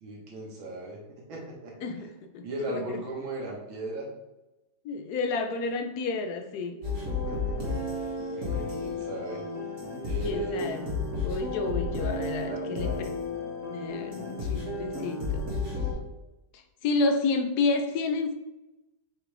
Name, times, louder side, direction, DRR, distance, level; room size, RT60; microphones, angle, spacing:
voice 1, 0.0-1.7 2.4-4.1 7.3-7.9 8.3-9.4 10.0-10.8 12.5-13.1, right 1 dB, 75° right, -2 dB, 2.2 m, -37 dB
voice 2, 1.8-3.0 4.8-6.8 10.0-10.9 11.1-13.1 13.7-15.5 16.5-18.3, left 3 dB, 70° left, 6 dB, 1.0 m, -30 dB
sound 1, 6.8-15.9, left 3 dB, 40° right, 2.0 m, -32 dB
7.3 x 4.7 x 3.4 m, 1.0 s
omnidirectional pair, 2.2 m